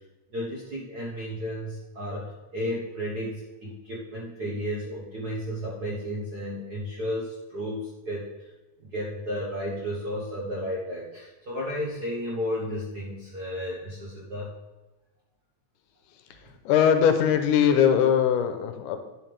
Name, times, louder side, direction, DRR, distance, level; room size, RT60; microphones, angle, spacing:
voice 1, 0.3-8.5 8.9-14.5, equal, 65° right, -5 dB, 1.0 m, -33 dB
voice 2, 16.7-19.0, left 8 dB, 85° left, 8 dB, 2.2 m, -21 dB
10.0 x 7.2 x 3.4 m, 1.1 s
omnidirectional pair, 3.7 m